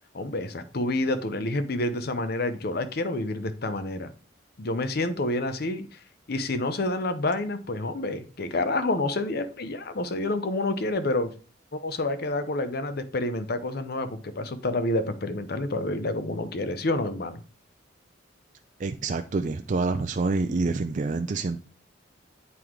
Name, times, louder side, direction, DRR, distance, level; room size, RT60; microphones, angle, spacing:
voice 1, 0.1-4.1 4.6-6.0 6.3-11.3 11.7-17.4, left 2 dB, 55° left, 0.7 m, -28 dB
voice 2, 18.8-21.6, right 3 dB, 40° right, 0.4 m, -27 dB
8.3 x 4.6 x 3.7 m
head